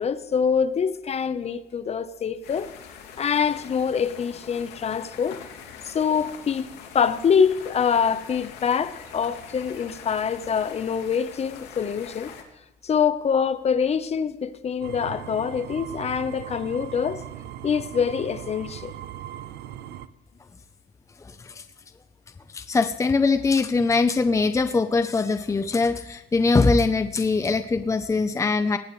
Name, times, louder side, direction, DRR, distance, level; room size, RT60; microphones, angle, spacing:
voice 1, 0.0-2.7 3.2-5.4 5.8-6.7 6.9-12.3 12.8-17.2 17.6-18.9, left 7 dB, 40° left, 1.0 m, -25 dB
sound 1, 2.4-12.4, left 7 dB, 85° left, 2.8 m, -43 dB
sound 2, 14.8-20.1, right 11 dB, 90° right, 0.9 m, -38 dB
voice 2, 21.2-21.6 22.5-28.8, left 3 dB, 20° left, 0.7 m, -22 dB
19.0 x 16.5 x 3.3 m
cardioid pair, 110°, 17 cm